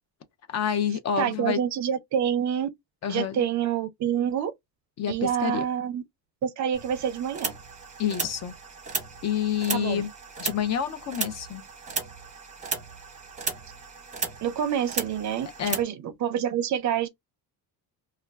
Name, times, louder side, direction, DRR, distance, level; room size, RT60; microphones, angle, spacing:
voice 1, 0.5-1.6 3.0-3.4 5.0-5.6 8.0-8.5 9.2-10.1 10.4-11.6 15.6-15.8, left 8 dB, 40° left, 0.5 m, -28 dB
voice 2, 1.2-2.7 3.1-4.5 5.1-6.0 6.4-7.5 9.7-10.0 14.4-15.5 15.8-17.1, right 9 dB, 45° right, 0.5 m, -27 dB
sound 1, 6.7-15.8, right 4 dB, 15° right, 0.8 m, -35 dB
2.3 x 2.1 x 3.2 m
cardioid pair, 130°, 42 cm